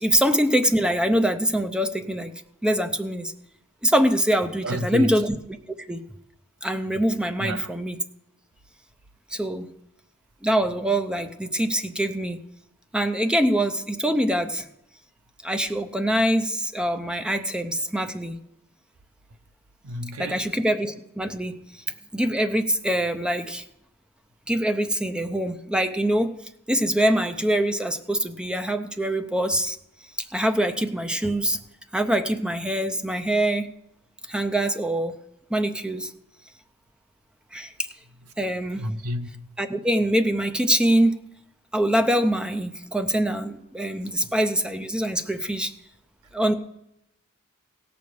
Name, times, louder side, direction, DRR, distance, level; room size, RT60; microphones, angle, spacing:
voice 1, 0.0-2.3 2.6-3.3 3.8-5.4 5.9-6.0 6.6-8.0 9.3-9.7 10.4-12.4 12.9-14.7 15.4-18.4 20.2-21.6 22.1-23.6 24.5-26.3 26.7-29.8 30.2-31.6 31.9-33.7 34.3-35.1 35.5-36.1 37.5-37.9 38.4-38.9 39.6-41.2 41.7-45.7 46.3-46.5, right 1 dB, 5° right, 0.6 m, -24 dB
voice 2, 4.6-5.1 7.4-7.7 19.8-20.5 38.7-39.6 44.2-44.3, right 1 dB, 85° right, 0.7 m, -30 dB
16.5 x 6.9 x 4.8 m
head